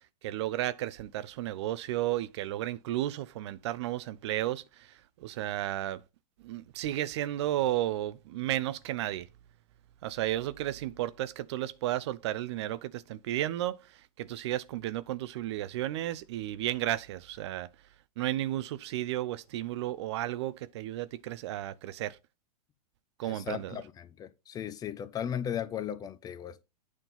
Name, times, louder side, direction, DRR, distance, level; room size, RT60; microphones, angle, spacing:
voice 1, 0.2-6.0 6.4-9.3 10.0-17.7 18.2-22.2 23.2-23.8, right 14 dB, 45° right, 0.5 m, -33 dB
voice 2, 23.2-26.6, left 9 dB, 20° left, 0.7 m, -36 dB
9.0 x 3.7 x 5.5 m
figure-of-eight pair, 105°, 21 cm